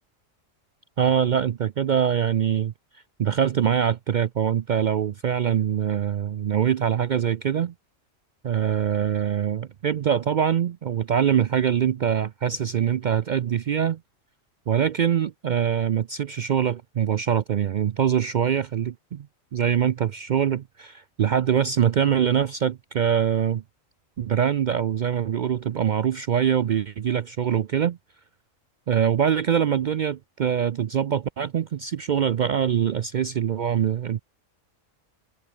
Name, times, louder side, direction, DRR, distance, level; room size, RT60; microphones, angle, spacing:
voice 1, 1.0-2.7 3.2-7.7 8.4-14.0 14.7-19.3 19.5-23.6 24.2-28.0 28.9-34.2, right 9 dB, 70° right, 0.4 m, -23 dB
omnidirectional pair, 1.3 m